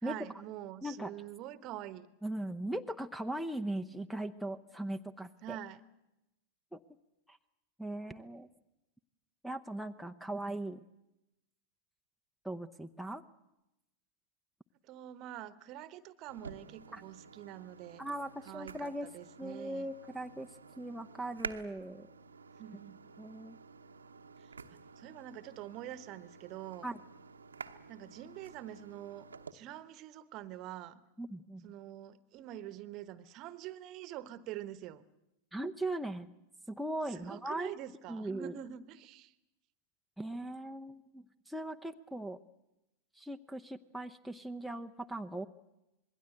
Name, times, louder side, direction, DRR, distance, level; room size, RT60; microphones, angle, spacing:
voice 1, 0.0-2.1 5.4-5.8 14.8-18.0 18.4-19.9 22.6-23.0 24.4-26.9 27.9-31.0 31.6-35.0 37.1-39.3, right 12 dB, 40° right, 15 dB, 1.1 m, -46 dB
voice 2, 0.8-1.1 2.2-5.6 6.7-6.8 7.3-7.4 7.8-8.5 9.4-10.8 12.4-13.2 16.9-17.0 18.0-19.1 19.4-20.5 20.8-22.1 23.2-23.6 26.8-27.0 31.2-31.7 35.5-36.3 36.7-37.7 38.1-38.5 40.2-42.4 43.1-45.5, right 1 dB, ahead, 3 dB, 0.8 m, -39 dB
sound 1, 16.3-29.5, right 5 dB, 75° right, 1.0 m, -50 dB
26.5 x 21.5 x 8.1 m, 0.95 s
figure-of-eight pair, 90°, 0 cm